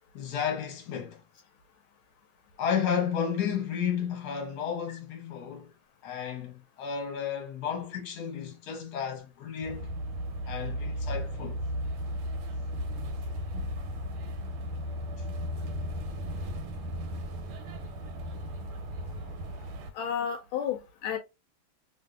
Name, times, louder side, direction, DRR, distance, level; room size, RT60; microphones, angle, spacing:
voice 1, 0.1-1.2 2.6-5.7 6.0-9.9 10.5-11.6, left 7 dB, 60° left, 1.4 m, -32 dB
sound 1, 9.6-19.9, equal, 90° right, 1.5 m, -35 dB
voice 2, 19.9-21.2, left 8 dB, 80° left, 1.4 m, -32 dB
3.3 x 2.6 x 2.3 m
omnidirectional pair, 2.3 m